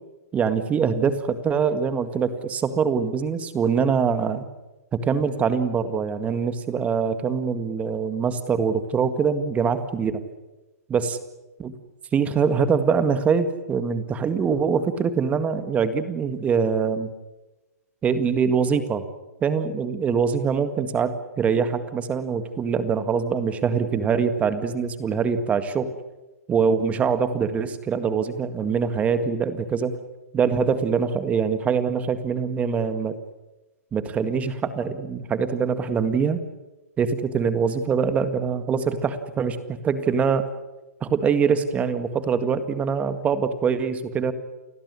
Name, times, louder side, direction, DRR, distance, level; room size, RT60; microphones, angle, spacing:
voice 1, 0.3-4.5 4.9-10.2 10.9-11.2 11.6-11.7 12.1-17.1 18.0-19.1 19.4-25.9 26.5-29.9 30.3-33.1 33.9-36.4 37.0-40.5 41.0-44.3, right 6 dB, 15° right, 11 dB, 1.9 m, -23 dB
30.0 x 16.0 x 9.8 m, 1.1 s
hypercardioid pair, 140°, 9 cm